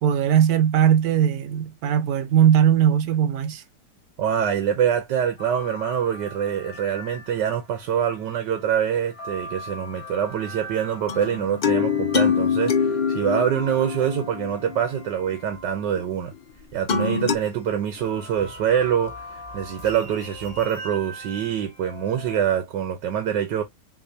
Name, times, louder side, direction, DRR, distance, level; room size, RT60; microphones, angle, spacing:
voice 1, 0.0-3.6, right 9 dB, 65° right, 1.2 m, -19 dB
voice 2, 4.2-16.3 16.7-23.6, right 9 dB, 85° right, 1.5 m, -25 dB
sound 1, 5.4-16.3 17.2-22.4, left 1 dB, 50° left, 2.7 m, -42 dB
sound 2, 11.1-15.1 16.9-17.4, left 6 dB, 85° left, 0.4 m, -24 dB
sound 3, 15.5-17.2 17.6-20.9, left 1 dB, 35° left, 2.0 m, -45 dB
6.0 x 3.1 x 2.8 m
omnidirectional pair, 1.9 m